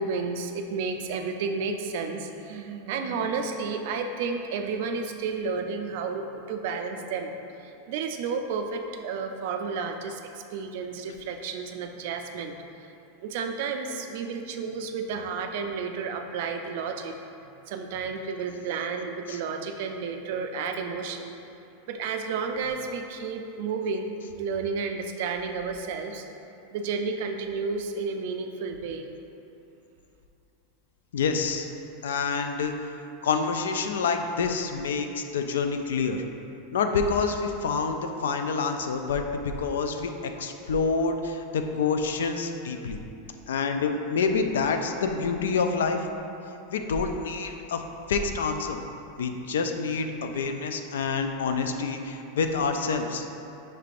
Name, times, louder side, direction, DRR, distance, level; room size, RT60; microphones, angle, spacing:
voice 1, 0.0-7.3 7.6-12.5 12.8-12.9 13.2-17.2 17.7-21.4 21.9-24.1 24.4-26.2 26.7-29.1, right 5 dB, 65° right, 5 dB, 0.3 m, -31 dB
voice 2, 31.1-31.7 32.0-32.9 33.2-36.2 36.7-43.0 43.5-46.1 46.7-47.8 48.1-48.8 49.2-53.2, left 5 dB, 90° left, 6 dB, 0.3 m, -27 dB
5.7 x 3.2 x 2.5 m, 2.7 s
supercardioid pair, 125°, 0 cm